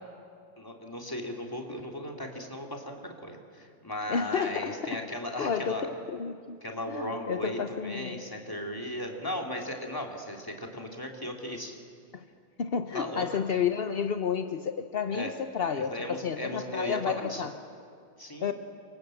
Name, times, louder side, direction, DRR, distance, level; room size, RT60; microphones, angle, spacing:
voice 1, 0.6-6.0 6.6-11.7 12.9-13.4 15.1-15.3 15.8-17.5 18.2-18.5, left 1 dB, 10° left, 1 dB, 3.0 m, -36 dB
voice 2, 4.1-5.0 5.4-6.6 6.9-8.3 12.1-12.2 12.6-17.5 18.4-18.5, left 6 dB, 50° left, 7 dB, 0.7 m, -31 dB
29.0 x 25.5 x 7.9 m, 2.3 s
omnidirectional pair, 2.1 m